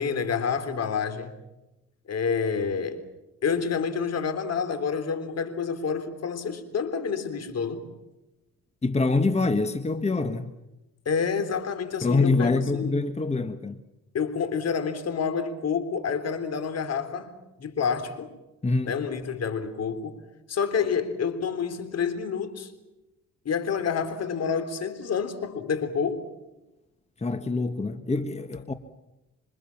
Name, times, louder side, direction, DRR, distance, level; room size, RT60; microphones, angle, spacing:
voice 1, 0.0-1.4 2.1-3.0 3.4-7.9 11.1-13.0 14.1-18.4 18.8-20.2 20.5-22.7 23.5-26.3, left 6 dB, 55° left, 3.8 m, -28 dB
voice 2, 8.8-10.5 12.0-13.8 18.6-19.0 27.2-28.7, left 3 dB, 20° left, 1.6 m, -25 dB
27.0 x 26.0 x 7.3 m
cardioid pair, 90°, 30 cm